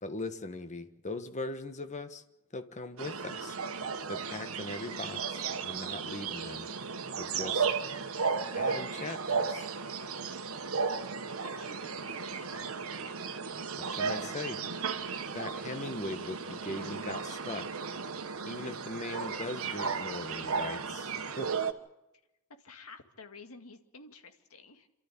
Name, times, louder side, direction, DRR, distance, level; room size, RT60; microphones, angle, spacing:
voice 1, 0.0-2.2 2.5-3.6 4.1-6.7 7.2-7.7 8.5-9.7 13.7-14.6 15.3-17.7 18.4-21.5, left 2 dB, 30° left, 8 dB, 1.4 m, -40 dB
sound 1, 3.0-21.7, right 5 dB, 65° right, 1.3 m, -35 dB
voice 2, 11.4-12.9 22.6-24.9, left 3 dB, 75° left, 5 dB, 2.2 m, -52 dB
27.5 x 13.0 x 8.6 m, 0.93 s
head